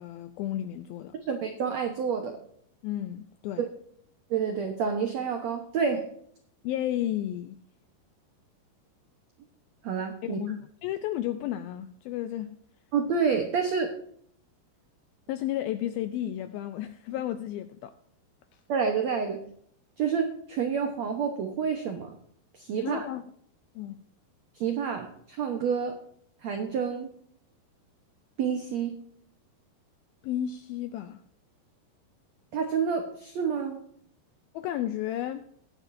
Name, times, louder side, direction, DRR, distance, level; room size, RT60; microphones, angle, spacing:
voice 1, 0.0-1.1 2.8-3.7 6.6-7.6 10.2-12.6 15.3-17.9 22.8-23.3 23.8-24.0 30.2-31.2 34.5-35.4, left 12 dB, 85° left, 2.1 m, -33 dB
voice 2, 1.3-2.4 3.6-3.7 4.3-6.1 9.8-10.4 12.9-13.9 18.7-19.4 20.0-22.1 22.5-23.1 24.5-26.0 26.4-27.1 28.4-29.0 32.5-33.8, right 6 dB, 80° right, 1.5 m, -28 dB
19.0 x 10.0 x 2.7 m
omnidirectional pair, 4.9 m